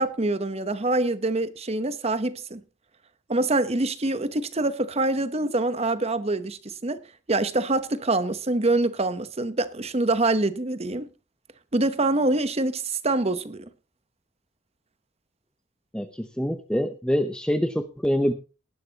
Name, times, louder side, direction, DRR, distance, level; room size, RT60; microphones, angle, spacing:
voice 1, 0.0-2.6 3.3-7.0 7.3-11.1 11.7-13.6, right 2 dB, 35° right, 0.9 m, -25 dB
voice 2, 15.9-18.3, equal, 5° left, 0.7 m, -25 dB
18.0 x 11.5 x 2.9 m
head